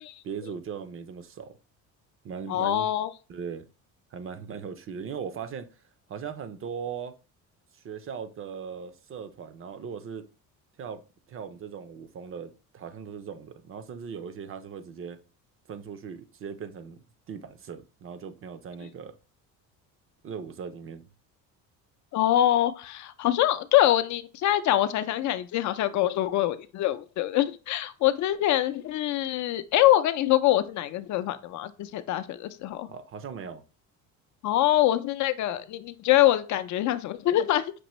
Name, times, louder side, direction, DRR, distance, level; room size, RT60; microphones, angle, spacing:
voice 1, 0.2-1.6 2.2-2.9 3.3-3.7 4.1-5.7 6.1-7.1 7.7-10.2 10.8-11.0 11.3-15.2 15.7-17.0 17.3-19.2 20.2-21.1 32.9-33.6, right 6 dB, 35° right, 0.5 m, -39 dB
voice 2, 2.5-3.1 22.1-32.9 34.4-37.7, left 13 dB, 55° left, 0.5 m, -24 dB
6.0 x 2.6 x 3.0 m
cardioid pair, 110°, 36 cm